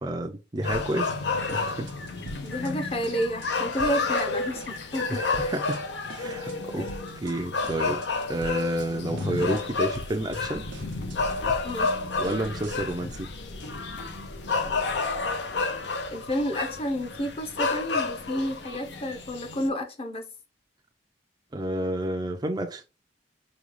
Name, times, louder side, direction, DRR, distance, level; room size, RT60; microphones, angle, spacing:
voice 1, 0.0-1.1 1.5-1.9 5.1-5.8 6.2-6.9 7.2-8.0 8.3-10.6 12.2-13.3 21.5-22.8, right 1 dB, 20° right, 0.5 m, -30 dB
sound 1, 0.6-19.7, left 4 dB, 65° left, 0.7 m, -30 dB
sound 2, 0.7-1.2 1.5-2.7 3.0-3.5 3.8-4.3 4.6-5.8 6.1-6.6 6.9-7.3 7.6-8.9 9.2-9.6 9.9-13.0, right 2 dB, 85° right, 0.6 m, -44 dB
voice 2, 2.4-5.5 6.2-6.4 6.8-6.9 11.6-11.9 16.1-20.3, equal, 30° left, 0.8 m, -31 dB
5.0 x 2.3 x 3.0 m
head